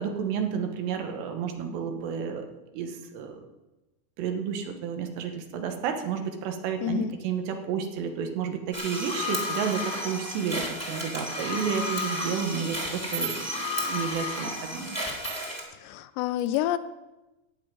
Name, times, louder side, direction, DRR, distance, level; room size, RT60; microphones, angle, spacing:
voice 1, 0.0-2.4 2.7-3.5 4.2-15.0, right 7 dB, 75° right, 5 dB, 3.3 m, -31 dB
voice 2, 6.8-7.1 15.7-16.8, left 12 dB, 85° left, 13 dB, 2.7 m, -28 dB
sound 1, 8.7-15.6, left 1 dB, 5° right, 1.7 m, -32 dB
14.5 x 5.7 x 9.1 m, 1.0 s
omnidirectional pair, 5.1 m